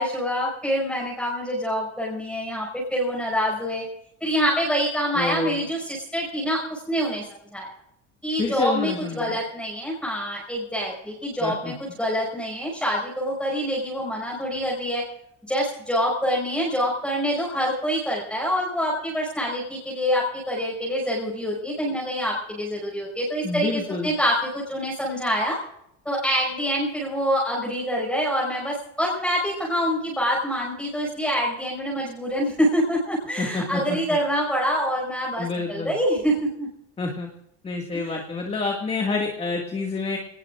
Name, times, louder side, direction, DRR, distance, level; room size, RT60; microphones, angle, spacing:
voice 1, 0.0-3.8 4.2-7.2 7.5-7.7 8.2-15.0 15.5-25.6 26.0-36.7 37.9-38.2, equal, 5° left, -3 dB, 5.7 m, -26 dB
voice 2, 5.2-5.6 8.4-9.4 11.4-11.7 23.4-24.1 33.4-34.2 35.4-35.9 37.0-37.3 37.6-40.2, left 4 dB, 20° left, 1 dB, 2.0 m, -28 dB
27.0 x 19.0 x 2.5 m, 0.79 s
cardioid pair, 145°, 30 cm